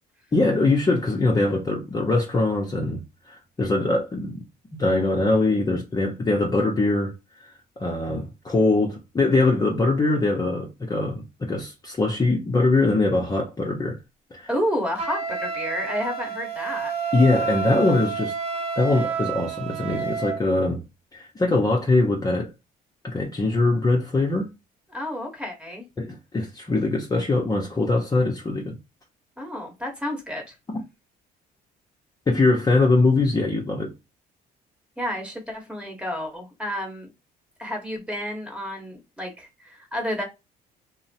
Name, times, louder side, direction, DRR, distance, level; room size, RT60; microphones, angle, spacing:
voice 1, 0.3-4.4 4.7-7.1 7.8-14.0 14.3-14.5 17.1-18.3 18.8-20.8 21.1-22.5 23.0-24.5 26.0-28.8 32.3-33.9, left 2 dB, 20° left, 0.7 m, -22 dB
voice 2, 14.5-16.9 24.9-25.8 29.4-30.5 35.0-37.1 37.6-40.2, equal, 5° right, 1.1 m, -30 dB
Wind instrument woodwind instrument, 15.0-20.4, right 5 dB, 35° right, 0.8 m, -29 dB
2.8 x 2.0 x 2.7 m
cardioid pair, 110°, 17 cm